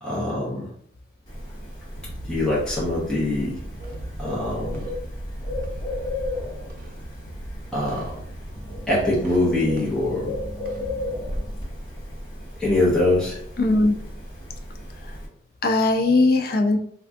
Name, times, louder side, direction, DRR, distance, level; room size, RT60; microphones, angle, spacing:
voice 1, 0.0-0.7 2.3-3.6 4.2-4.9 7.7-8.1 8.9-10.3 12.6-13.4, left 2 dB, 5° left, -8 dB, 0.7 m, -23 dB
Bird, 1.3-15.3, left 1 dB, 25° left, 1.0 m, -34 dB
sound 1, 2.0-11.4, right 1 dB, 45° right, 0.4 m, -40 dB
voice 2, 13.6-14.0 15.0-15.2 15.6-16.8, left 2 dB, 50° left, 5 dB, 0.4 m, -19 dB
3.4 x 2.3 x 2.5 m, 0.66 s
head